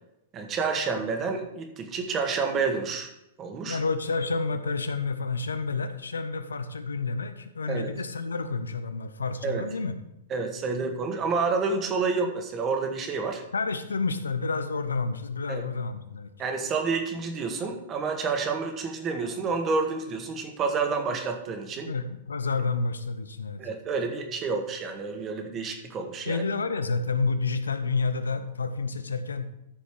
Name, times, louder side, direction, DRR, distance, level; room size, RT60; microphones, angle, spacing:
voice 1, 0.3-3.1 3.4-3.8 7.7-7.9 9.4-9.6 10.3-13.4 15.5-15.6 16.4-21.9 23.6-26.4, right 4 dB, 30° right, 4 dB, 1.8 m, -29 dB
voice 2, 3.7-9.9 13.5-16.3 21.8-23.6 26.3-29.5, left 4 dB, 80° left, 10 dB, 0.8 m, -29 dB
14.0 x 5.2 x 4.8 m, 0.84 s
figure-of-eight pair, 105°, 0 cm